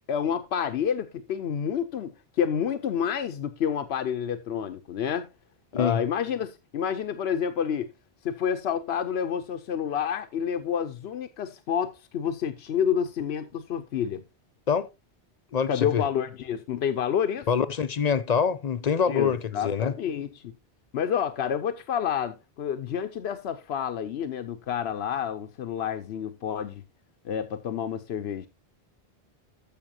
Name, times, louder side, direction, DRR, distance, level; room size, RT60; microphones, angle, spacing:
voice 1, 0.1-5.3 5.7-7.9 8.2-14.2 15.7-17.5 19.1-20.5 20.9-26.8 27.2-28.5, left 8 dB, 85° left, 1.0 m, -29 dB
voice 2, 15.5-16.0 17.5-19.9, left 7 dB, 50° left, 0.6 m, -25 dB
13.5 x 5.9 x 2.8 m
omnidirectional pair, 1.0 m